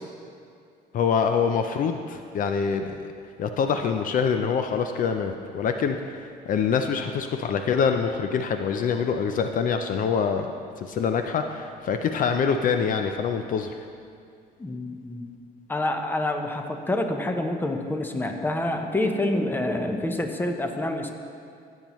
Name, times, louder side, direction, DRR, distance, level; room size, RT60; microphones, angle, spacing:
voice 1, 0.9-3.1 3.4-10.5 10.8-13.8, left 6 dB, 55° left, 6 dB, 0.5 m, -25 dB
voice 2, 14.6-15.2 15.7-21.1, left 1 dB, 10° left, 5 dB, 0.8 m, -27 dB
15.5 x 7.2 x 3.1 m, 2.3 s
cardioid pair, 110°, 17 cm